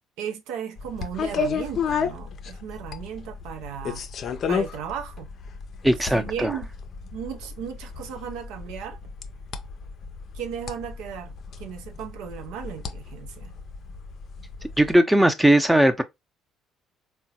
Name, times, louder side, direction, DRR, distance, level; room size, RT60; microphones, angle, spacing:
voice 1, 0.2-4.0 4.5-5.3 6.1-6.7 7.1-9.0 10.3-13.5, right 8 dB, 75° right, 0.5 m, -35 dB
sound 1, 0.8-14.9, left 6 dB, 55° left, 0.5 m, -33 dB
voice 2, 5.8-6.5 14.8-16.0, right 1 dB, 5° right, 0.6 m, -18 dB
3.7 x 2.2 x 2.7 m
hypercardioid pair, 55°, 0 cm